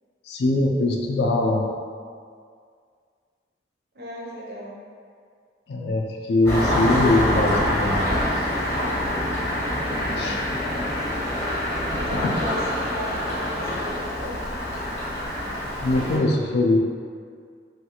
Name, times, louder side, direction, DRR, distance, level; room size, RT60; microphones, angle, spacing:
voice 1, 0.3-1.7 5.7-8.0 10.2-10.4 12.1-12.3 15.8-16.8, left 2 dB, 65° left, 1 dB, 0.3 m, -22 dB
voice 2, 3.9-4.8 9.8-10.4 11.9-14.4, equal, 60° right, -3 dB, 0.5 m, -36 dB
Engine starting, 6.5-16.2, left 1 dB, 15° left, 0.7 m, -25 dB
3.1 x 2.3 x 2.9 m, 2.1 s
head